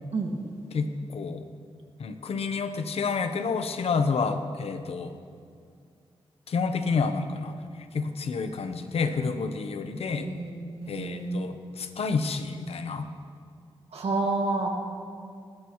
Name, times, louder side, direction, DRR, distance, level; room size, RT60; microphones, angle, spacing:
voice 1, 0.7-1.4 2.0-5.1 6.5-7.6 7.9-10.3 10.9-13.1, left 4 dB, 80° left, 8 dB, 0.9 m, -29 dB
voice 2, 10.1-11.5 13.9-14.7, right 3 dB, 85° right, 1 dB, 2.0 m, -29 dB
20.0 x 16.0 x 3.1 m, 2.3 s
wide cardioid pair, 150°, 10 cm